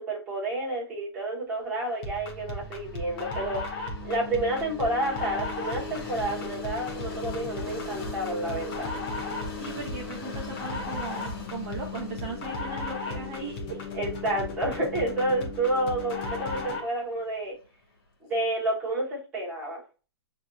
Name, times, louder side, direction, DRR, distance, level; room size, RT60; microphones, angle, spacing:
voice 1, 0.0-8.9 13.9-17.5 18.3-19.8, right 1 dB, 10° right, -6 dB, 1.2 m, -30 dB
sound 1, 2.0-17.0, left 3 dB, 20° left, 0.6 m, -35 dB
Train, 2.1-18.0, left 3 dB, 60° left, 1.3 m, -45 dB
voice 2, 9.6-13.8, right 4 dB, 35° right, -2 dB, 0.8 m, -38 dB
6.2 x 2.8 x 2.3 m, 0.33 s
hypercardioid pair, 175°, 14 cm